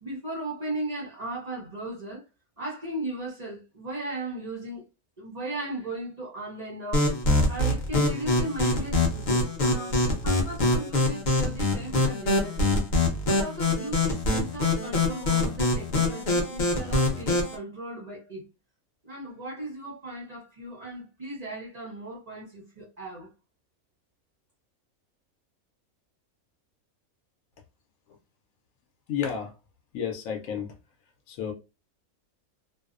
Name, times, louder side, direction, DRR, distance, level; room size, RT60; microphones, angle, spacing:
voice 1, 0.0-2.2 2.6-4.8 5.2-7.1 7.5-12.8 13.2-18.4 19.0-23.3, right 1 dB, 50° right, 0.4 m, -37 dB
sound 1, 6.9-17.5, left 2 dB, 50° left, 0.6 m, -24 dB
voice 2, 29.1-29.5 29.9-30.7 31.3-31.5, left 8 dB, 75° left, 1.0 m, -31 dB
2.6 x 2.0 x 2.4 m
omnidirectional pair, 1.5 m